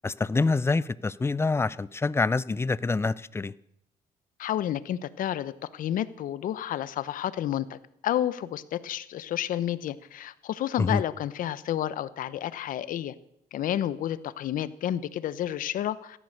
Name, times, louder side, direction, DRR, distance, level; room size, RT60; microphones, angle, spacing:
voice 1, 0.0-3.5 10.8-11.0, left 3 dB, 15° left, 0.5 m, -26 dB
voice 2, 4.4-13.1 13.5-16.2, left 11 dB, 65° left, 0.9 m, -30 dB
16.0 x 13.5 x 6.6 m
cardioid pair, 105°, 15 cm